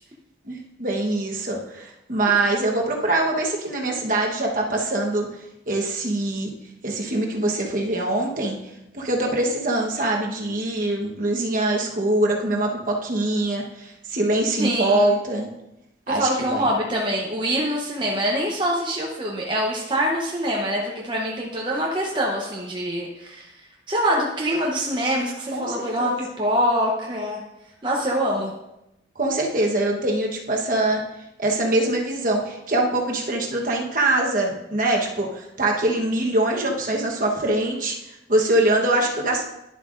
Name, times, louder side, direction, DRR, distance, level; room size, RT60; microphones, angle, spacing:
voice 1, 0.5-5.3 5.7-6.5 6.8-8.6 8.9-15.5 16.1-16.7 25.5-26.2 29.2-31.0 31.4-38.0 38.3-39.5, right 2 dB, 45° right, 0 dB, 1.1 m, -23 dB
voice 2, 14.6-15.2 16.1-23.5 23.9-27.4 27.8-28.5, equal, 25° right, -2 dB, 0.8 m, -24 dB
11.0 x 7.5 x 2.5 m, 0.89 s
head